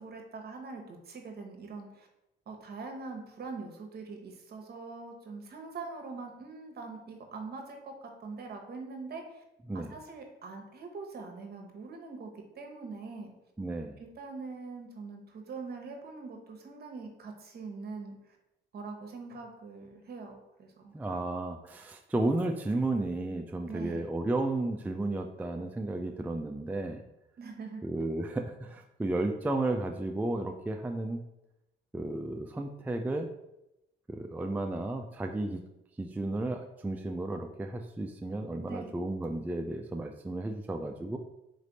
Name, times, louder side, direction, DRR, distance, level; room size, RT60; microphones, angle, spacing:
voice 1, 0.0-2.1 2.5-9.4 9.7-13.3 14.0-18.4 18.7-21.2 23.7-24.1 27.4-27.8 38.7-38.9, right 4 dB, 55° right, 3 dB, 1.0 m, -43 dB
voice 2, 13.6-14.0 20.9-27.0 27.8-31.2 31.9-33.3 34.1-35.6 36.0-41.2, right 2 dB, 10° right, 4 dB, 0.3 m, -33 dB
4.1 x 3.3 x 3.9 m, 0.89 s
cardioid pair, 90°, 20 cm